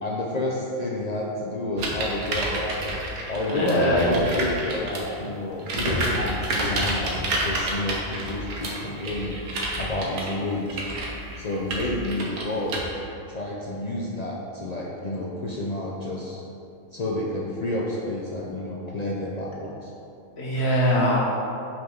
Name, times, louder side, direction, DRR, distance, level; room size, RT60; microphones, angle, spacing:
voice 1, 0.0-3.0 3.3-9.4 9.8-10.8 11.4-12.8 13.3-16.4 16.9-19.9, left 1 dB, 75° left, -3 dB, 0.3 m, -29 dB
sound 1, 1.8-5.2 5.6-12.8, right 1 dB, 85° right, 1.4 m, -29 dB
voice 2, 3.5-4.2 20.4-21.2, equal, 50° left, -4 dB, 1.4 m, -22 dB
5.4 x 4.3 x 5.4 m, 2.7 s
omnidirectional pair, 1.5 m